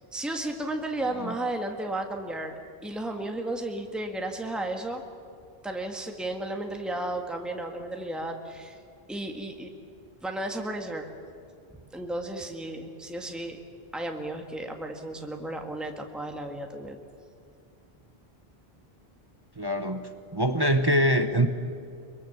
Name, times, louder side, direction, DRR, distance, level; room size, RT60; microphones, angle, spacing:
voice 1, 0.1-2.6 2.8-5.0 5.6-8.8 9.1-9.7 10.2-11.1 11.9-13.6 13.9-17.0, right 1 dB, ahead, 3 dB, 1.7 m, -33 dB
voice 2, 19.6-20.0 20.3-21.5, equal, 25° right, 7 dB, 1.0 m, -24 dB
23.5 x 23.0 x 7.2 m, 2.4 s
omnidirectional pair, 1.0 m